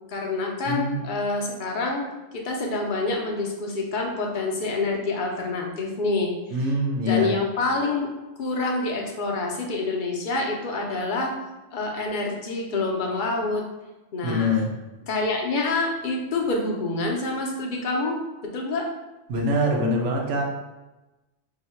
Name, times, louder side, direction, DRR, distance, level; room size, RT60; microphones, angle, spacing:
voice 1, 0.1-2.0 2.4-6.3 7.1-8.1 8.4-11.3 11.7-13.7 14.1-14.6 15.1-18.9, left 3 dB, 50° left, 0 dB, 0.7 m, -27 dB
voice 2, 0.7-1.1 6.5-7.3 14.2-14.7 19.3-20.4, left 1 dB, 70° right, 0 dB, 1.0 m, -24 dB
2.8 x 2.7 x 4.3 m, 1.1 s
omnidirectional pair, 1.3 m